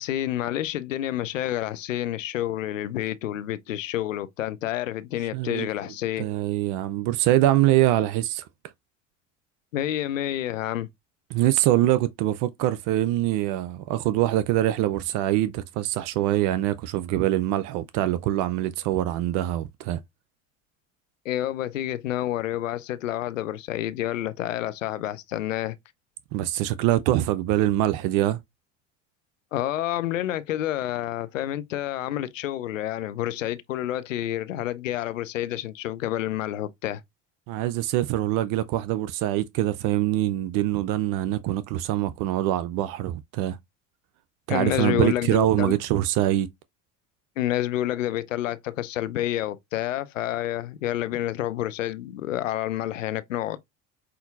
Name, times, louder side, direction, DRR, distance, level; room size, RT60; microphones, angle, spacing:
voice 1, 0.0-6.3 9.7-10.9 21.3-25.8 29.5-37.0 44.5-45.7 47.4-53.6, left 13 dB, 90° left, 0.5 m, -29 dB
voice 2, 5.3-5.7 6.2-8.5 11.3-20.0 26.3-28.4 37.5-43.6 44.5-46.5, right 14 dB, 60° right, 0.5 m, -24 dB
5.7 x 2.7 x 2.3 m
hypercardioid pair, 70°, 37 cm